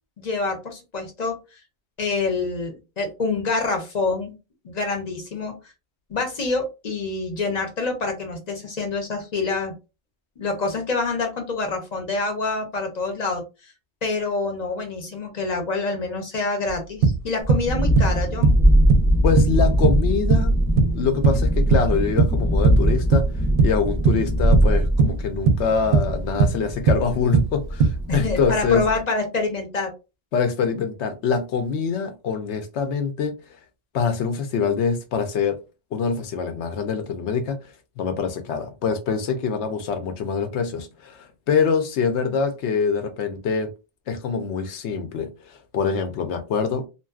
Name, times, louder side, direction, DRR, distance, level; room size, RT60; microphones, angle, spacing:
voice 1, 0.2-1.6 2.0-4.3 4.6-5.5 6.1-9.7 10.4-13.4 14.0-18.6 28.1-29.9, left 3 dB, 45° left, 0.7 m, -26 dB
sound 1, 16.7-16.8 17.0-17.7 18.0-18.6 18.9-19.1 19.4-19.6 19.8-20.5 20.8-21.9 22.2-22.9 23.1-23.8 24.0-24.3 24.5-25.2 25.5-26.1 26.4-26.6 26.9-27.1 27.3-28.0, right 5 dB, 65° right, 0.7 m, -19 dB
Thunderstorm, 17.4-29.0, equal, 10° right, 0.3 m, -22 dB
voice 2, 19.2-20.6 20.9-23.3 23.6-28.8 30.3-33.3 33.9-35.6 35.9-37.6 38.0-43.7 44.1-46.8, left 6 dB, 85° left, 0.9 m, -24 dB
2.6 x 2.2 x 2.3 m
omnidirectional pair, 1.1 m